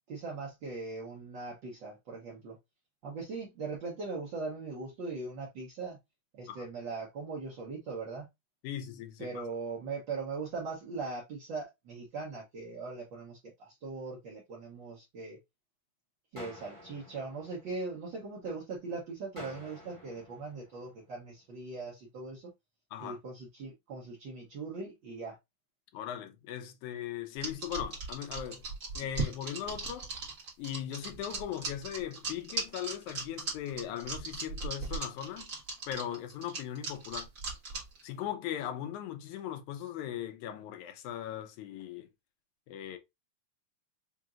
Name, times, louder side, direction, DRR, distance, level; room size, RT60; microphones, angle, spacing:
voice 1, 0.1-2.6 3.0-6.0 6.3-8.3 9.2-15.4 16.3-22.5 23.0-25.4, right 4 dB, 75° right, 1.0 m, -40 dB
voice 2, 8.6-9.4 22.9-23.2 25.9-28.6 29.0-30.1 30.6-35.5 35.9-37.3 38.0-42.1 42.7-43.0, left 10 dB, 85° left, 2.2 m, -39 dB
sound 1, 16.4-18.4 19.4-21.4, left 1 dB, 20° left, 0.8 m, -51 dB
sound 2, 27.4-38.0, right 3 dB, 35° right, 1.5 m, -37 dB
5.1 x 2.8 x 2.4 m
omnidirectional pair, 3.4 m